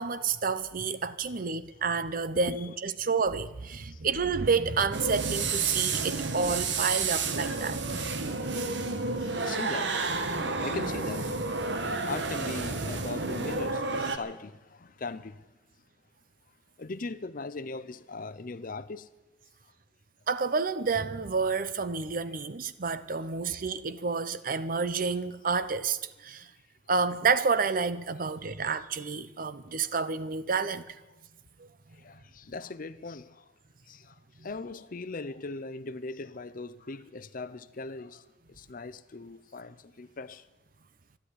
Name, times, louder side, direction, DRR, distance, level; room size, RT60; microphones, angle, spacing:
voice 1, 0.0-7.8 20.3-26.5 26.9-31.0 31.6-31.7, right 5 dB, 50° right, 0.8 m, -29 dB
sound 1, 4.9-14.2, right 4 dB, 75° right, 1.3 m, -31 dB
voice 2, 8.0-8.6 9.2-15.4 16.8-19.1 19.6-19.7 23.2-23.6 26.3-26.5 29.8-29.9 31.9-33.5 33.9-40.5, left 3 dB, 50° left, 0.7 m, -40 dB
13.0 x 11.0 x 9.9 m
head